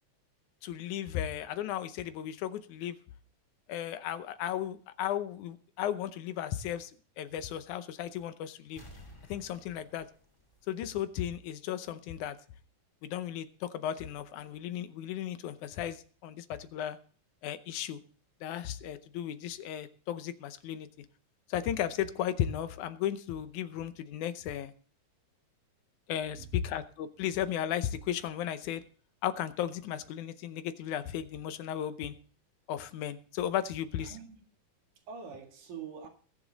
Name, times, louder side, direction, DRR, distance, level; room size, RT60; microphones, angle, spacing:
voice 1, 0.6-3.0 3.7-6.9 7.2-8.8 9.3-10.1 10.7-12.4 13.0-17.0 17.4-18.0 18.4-21.1 21.5-24.7 26.1-28.8 29.2-32.2 32.7-34.1, left 10 dB, 80° left, 12 dB, 2.2 m, -35 dB
sound 1, 8.8-11.4 11.7-11.8, left 1 dB, 10° left, 1.7 m, -54 dB
voice 2, 34.0-34.4 35.0-36.1, right 6 dB, 80° right, 3 dB, 3.4 m, -45 dB
21.0 x 7.3 x 4.0 m, 0.43 s
omnidirectional pair, 3.5 m